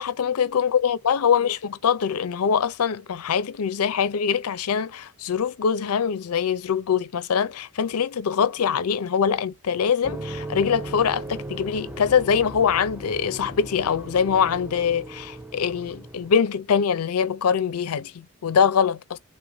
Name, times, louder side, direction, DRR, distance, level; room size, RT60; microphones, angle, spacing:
voice 1, 0.0-19.2, left 7 dB, 85° left, 0.5 m, -23 dB
sound 1, 10.0-16.4, right 1 dB, 10° right, 0.3 m, -37 dB
3.4 x 3.0 x 3.4 m
head